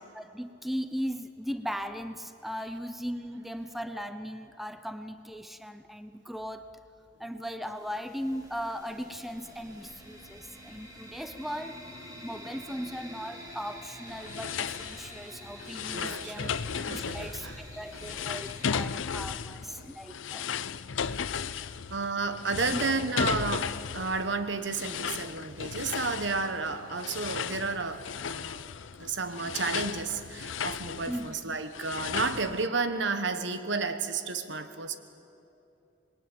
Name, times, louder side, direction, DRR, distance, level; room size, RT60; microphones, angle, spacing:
voice 1, 0.0-6.7 7.2-11.8 12.2-16.5 16.9-20.8 22.7-22.8 31.1-31.6, equal, ahead, 10 dB, 0.7 m, -38 dB
sound 1, 7.7-18.7, equal, 20° right, 3.7 m, -47 dB
sound 2, 14.1-32.7, left 7 dB, 90° left, 0.6 m, -35 dB
voice 2, 15.9-17.6 21.9-28.6 29.0-35.0, right 4 dB, 65° right, 10 dB, 1.3 m, -32 dB
26.0 x 21.0 x 9.1 m, 2.9 s
head